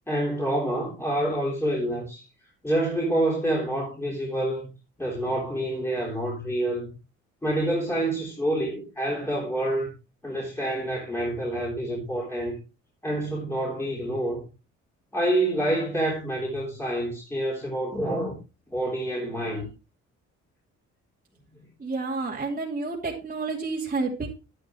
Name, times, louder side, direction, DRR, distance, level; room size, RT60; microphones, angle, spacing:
voice 1, 0.1-2.2 2.6-4.7 5.0-6.9 7.4-9.9 10.2-12.6 13.0-14.4 15.1-18.4 18.7-19.7, right 1 dB, 10° left, 3.5 m, -27 dB
voice 2, 21.8-24.3, right 3 dB, 25° right, 2.6 m, -30 dB
10.5 x 9.9 x 3.1 m
cardioid pair, 90°, 30 cm